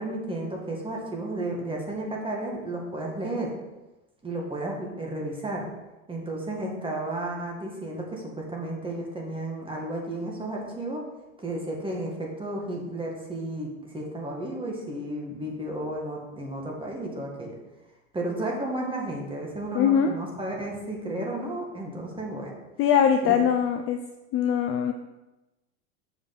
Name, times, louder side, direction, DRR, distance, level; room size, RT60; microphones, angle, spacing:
voice 1, 0.0-3.5 4.2-5.6 6.1-11.0 11.4-17.6 18.1-22.5 23.2-23.4, right 1 dB, 10° right, -1 dB, 2.0 m, -33 dB
voice 2, 19.7-20.1 22.8-24.0 24.3-24.9, left 8 dB, 35° left, 6 dB, 0.5 m, -22 dB
6.9 x 5.1 x 6.1 m, 1.0 s
hypercardioid pair, 110°, 43 cm